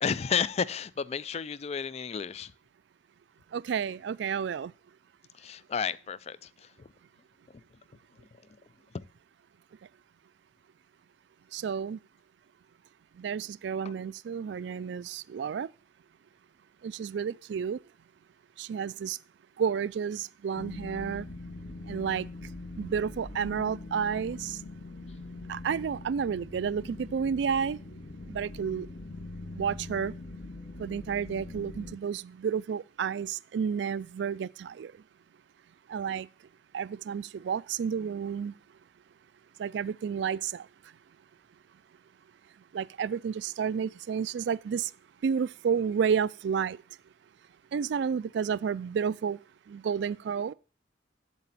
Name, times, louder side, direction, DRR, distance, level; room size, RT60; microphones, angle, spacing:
voice 1, 0.0-2.5 5.3-6.9 7.5-7.6 8.9-9.1 13.8-13.9, left 6 dB, 35° left, 0.3 m, -32 dB
voice 2, 3.5-4.7 11.5-12.0 13.2-15.7 16.8-17.8 18.6-19.2 19.6-21.3 21.9-22.3 22.8-24.6 25.5-27.8 28.3-28.9 29.6-30.1 30.8-34.9 35.9-36.3 36.7-38.5 39.6-40.7 42.7-44.9 45.2-46.8 47.7-49.4 49.7-50.5, right 7 dB, 65° right, 0.3 m, -31 dB
sound 1, 20.6-32.0, left 2 dB, 60° left, 1.7 m, -43 dB
8.2 x 7.6 x 4.0 m
head